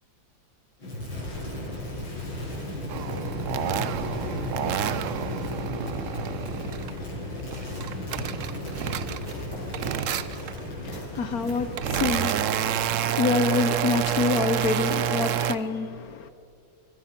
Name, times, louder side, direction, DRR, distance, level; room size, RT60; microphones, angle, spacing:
Crackle, 0.8-12.4, left 1 dB, 85° left, 7.9 m, -34 dB
sound 1, 2.9-7.0 7.4-9.4 9.7-10.6 11.3-15.5, right 10 dB, 75° right, 0.7 m, -29 dB
sound 2, 7.5-15.2, right 1 dB, 50° right, 5.2 m, -47 dB
voice 1, 9.1-16.3, left 5 dB, 55° left, 1.2 m, -28 dB
24.0 x 19.5 x 6.0 m
omnidirectional pair, 2.1 m